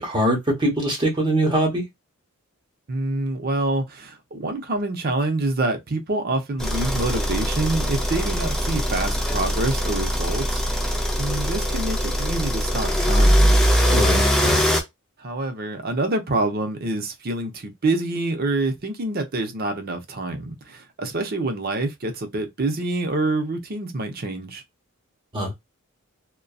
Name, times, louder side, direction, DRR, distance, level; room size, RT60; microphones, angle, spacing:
voice 1, 0.0-1.8 13.9-14.6 25.3-25.5, right 1 dB, 20° right, 0.9 m, -22 dB
voice 2, 2.9-10.9 11.2-13.5 15.2-24.6, right 2 dB, 45° right, 0.6 m, -26 dB
sound 1, 6.6-14.8, equal, ahead, 0.4 m, -21 dB
2.6 x 2.2 x 2.3 m
head